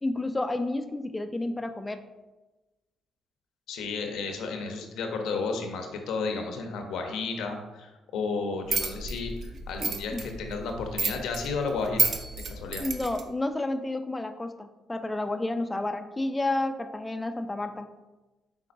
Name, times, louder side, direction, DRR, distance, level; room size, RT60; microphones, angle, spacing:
voice 1, 0.0-2.0 9.8-10.3 12.8-17.9, left 2 dB, 15° left, 8 dB, 0.4 m, -31 dB
voice 2, 3.7-12.1 12.5-12.8, left 4 dB, 85° left, 4 dB, 0.7 m, -32 dB
sound 1, 8.7-13.2, right 4 dB, 60° right, 0.5 m, -31 dB
5.2 x 3.7 x 2.6 m, 1.1 s
cardioid pair, 90°, 0 cm